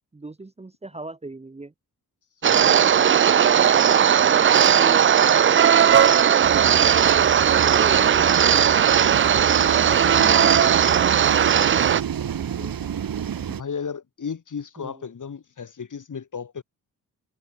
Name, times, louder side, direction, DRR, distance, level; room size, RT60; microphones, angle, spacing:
voice 1, 0.1-1.7 3.9-5.7 7.5-8.8 9.8-11.9 14.8-15.1, right 2 dB, 15° right, 1.1 m, -38 dB
voice 2, 2.4-3.1 9.8-10.5 13.5-16.6, left 6 dB, 55° left, 5.0 m, -35 dB
sound 1, 2.4-12.0, right 8 dB, 35° right, 0.4 m, -17 dB
sound 2, 6.4-13.6, right 8 dB, 70° right, 1.9 m, -29 dB
wide cardioid pair, 105°, 36 cm